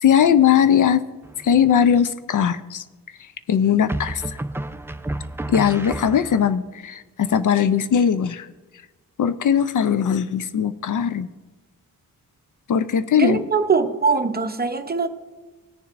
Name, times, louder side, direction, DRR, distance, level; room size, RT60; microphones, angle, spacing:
voice 1, 0.0-1.0 1.4-2.8 3.5-4.4 5.5-8.5 9.2-11.3 12.7-13.4, left 8 dB, 60° left, 12 dB, 0.5 m, -19 dB
sound 1, 1.2-1.8 3.9-6.6, right 1 dB, 5° right, 0.3 m, -31 dB
voice 2, 13.1-15.1, right 5 dB, 25° right, 7 dB, 0.8 m, -22 dB
21.0 x 7.0 x 2.5 m, 1.2 s
wide cardioid pair, 100°, 35 cm